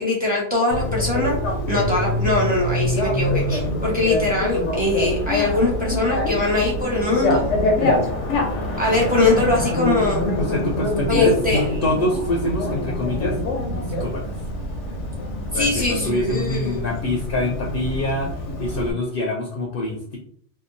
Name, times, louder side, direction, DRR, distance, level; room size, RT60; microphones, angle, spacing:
voice 1, 0.0-1.4 1.7-7.5 8.8-10.3 11.1-11.7 15.5-16.8, left 2 dB, 10° right, -5 dB, 0.9 m, -21 dB
Bicycle, 0.7-18.9, left 1 dB, 85° left, 1.0 m, -25 dB
sound 1, 8.8-15.8, right 2 dB, 65° right, 0.8 m, -37 dB
voice 2, 10.4-13.4 13.9-14.3 15.5-20.2, left 1 dB, 60° left, -1 dB, 0.6 m, -25 dB
2.8 x 2.3 x 2.5 m, 0.63 s
omnidirectional pair, 1.2 m